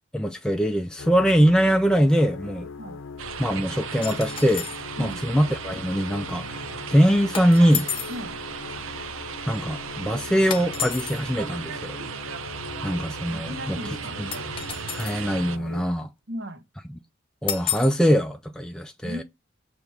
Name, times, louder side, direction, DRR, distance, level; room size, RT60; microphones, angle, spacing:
voice 1, 0.1-2.7 3.4-4.7 5.0-7.9 9.5-12.0 12.8-13.8 14.2-14.3 14.9-16.1 17.4-19.2, equal, 5° left, 0.3 m, -22 dB
sound 1, 1.0-15.8, left 4 dB, 70° left, 0.6 m, -40 dB
sound 2, 3.2-15.6, right 7 dB, 90° right, 0.6 m, -36 dB
sound 3, 4.0-4.8 7.3-8.2 10.5-11.2 14.3-15.3 17.5-18.0, left 8 dB, 25° left, 0.7 m, -31 dB
voice 2, 13.3-14.2 16.3-16.6 19.0-19.2, equal, 60° right, 0.9 m, -36 dB
6.6 x 2.9 x 5.8 m
head